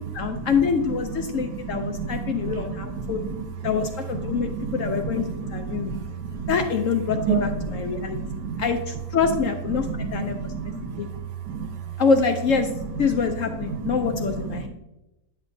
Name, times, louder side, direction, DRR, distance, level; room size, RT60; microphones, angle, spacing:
voice 1, 0.1-3.3 3.6-5.2 5.5-5.9 6.5-8.2 8.6-10.4 11.0-11.1 12.0-12.7 13.0-14.7, left 5 dB, 70° left, 5 dB, 0.8 m, -25 dB
voice 2, 1.6-3.1 4.2-6.5 7.1-8.6 10.0-11.0 11.5-11.6 13.7-14.0 14.3-14.4, right 5 dB, 75° right, 6 dB, 1.4 m, -30 dB
10.5 x 6.3 x 2.6 m, 0.97 s
omnidirectional pair, 1.8 m